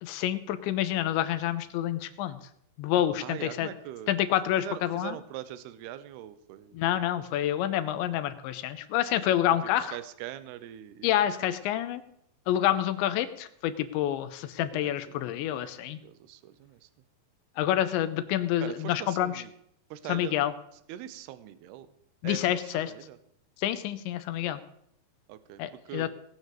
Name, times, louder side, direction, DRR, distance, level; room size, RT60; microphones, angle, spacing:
voice 1, 0.0-2.4 2.8-3.7 4.1-5.2 6.7-10.0 11.0-12.0 12.5-16.0 17.6-19.3 20.1-20.5 22.2-22.9 23.6-24.6 25.6-26.1, left 12 dB, 90° left, 11 dB, 3.1 m, -28 dB
voice 2, 3.2-4.2 4.6-6.8 9.6-11.3 14.8-16.9 18.6-19.5 19.9-20.3 20.9-21.9 22.2-23.2 25.3-26.1, right 12 dB, 75° right, 13 dB, 2.7 m, -42 dB
19.0 x 8.3 x 6.7 m, 0.73 s
omnidirectional pair, 5.2 m